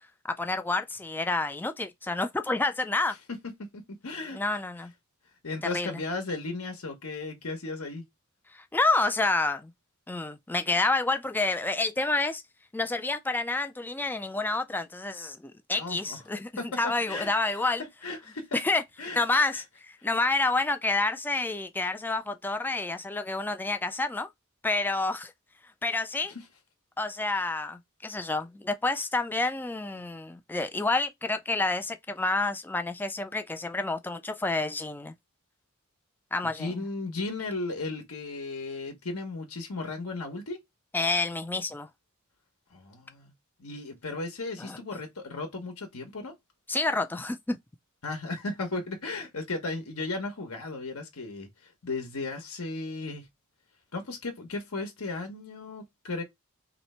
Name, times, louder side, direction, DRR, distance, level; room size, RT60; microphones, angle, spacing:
voice 1, 0.3-3.1 4.3-4.9 5.7-6.0 8.5-9.7 10.1-12.4 12.7-17.8 18.5-18.8 19.1-24.3 24.6-25.3 25.8-26.3 27.0-35.1 36.3-36.8 40.9-41.9 44.6-44.8 46.7-47.6, left 3 dB, 10° left, 0.3 m, -29 dB
voice 2, 3.3-4.4 5.4-8.0 15.7-16.2 16.6-17.5 18.0-18.6 19.0-19.2 19.5-19.6 20.0-20.1 26.3-26.4 27.3-27.4 36.6-40.6 42.7-43.3 43.6-46.3 48.0-53.3 53.9-56.2, left 3 dB, 75° left, 1.0 m, -35 dB
3.2 x 2.9 x 4.1 m
head